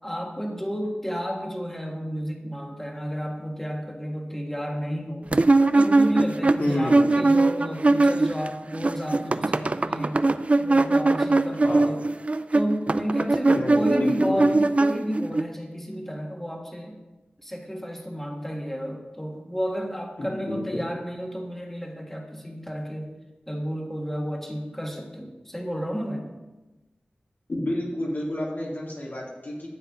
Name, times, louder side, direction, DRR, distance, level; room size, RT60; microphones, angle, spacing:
voice 1, 0.0-5.3 5.7-10.3 10.6-12.0 12.5-17.0 17.4-23.1 23.5-26.3, equal, 10° left, 1 dB, 1.7 m, -31 dB
sound 1, 5.3-8.5 8.7-15.4, right 2 dB, 40° right, 0.4 m, -21 dB
voice 2, 6.6-7.1 11.6-11.9 13.5-14.5 20.2-20.8 27.5-29.7, left 1 dB, 65° left, -5 dB, 3.4 m, -29 dB
13.0 x 8.0 x 3.8 m, 1.1 s
wide cardioid pair, 60°, 3 cm